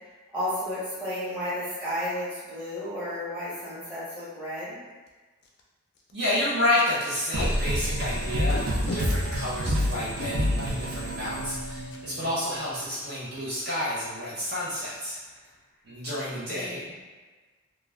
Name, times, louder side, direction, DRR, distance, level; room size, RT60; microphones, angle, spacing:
voice 1, 0.3-4.8 16.5-16.9, left 1 dB, 10° right, -12 dB, 1.0 m, -33 dB
Packing tape duct tape, 3.5-3.7 4.1-4.2 4.4-4.6 5.1-5.2 5.4-5.6 5.9-6.1 7.1-7.5 8.5-9.0 10.0-10.3 11.9-12.0 12.4-12.6 12.8-13.2, left 1 dB, 50° left, 0.4 m, -35 dB
voice 2, 6.1-15.2 15.8-17.0, left 1 dB, 50° right, -9 dB, 0.7 m, -30 dB
sound 1, 7.3-12.6, equal, 85° right, 0.5 m, -28 dB
2.3 x 2.2 x 3.2 m, 1.3 s
head